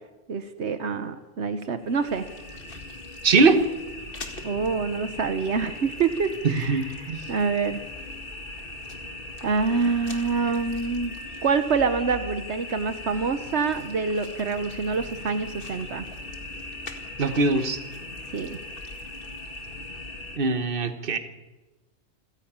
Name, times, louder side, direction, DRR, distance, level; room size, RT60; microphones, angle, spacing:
voice 1, 0.3-2.3 4.4-6.8 7.3-7.8 9.4-11.1 11.4-16.1 18.3-18.6, right 5 dB, 80° right, 9 dB, 1.3 m, -26 dB
sound 1, 1.8-20.4, left 2 dB, 55° left, 2.2 m, -39 dB
voice 2, 3.2-3.6 6.4-7.2 17.2-17.8 20.4-21.2, right 3 dB, 55° right, 9 dB, 1.5 m, -21 dB
28.0 x 10.5 x 8.8 m, 1.1 s
omnidirectional pair, 1.1 m